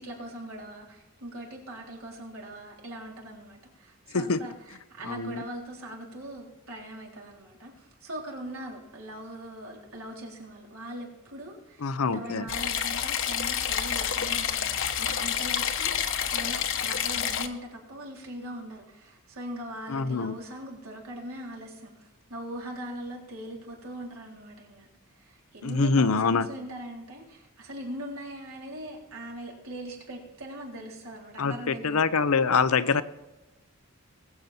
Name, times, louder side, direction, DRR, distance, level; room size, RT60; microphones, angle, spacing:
voice 1, 0.0-24.9 25.1-32.1, right 1 dB, 75° right, -1 dB, 3.9 m, -41 dB
voice 2, 5.1-5.4 11.8-12.4 19.9-20.3 25.6-26.5 31.4-33.0, left 4 dB, 85° left, 13 dB, 0.7 m, -25 dB
sound 1, 12.5-17.5, left 8 dB, 60° left, 1.1 m, -28 dB
21.0 x 8.0 x 4.4 m, 1.1 s
head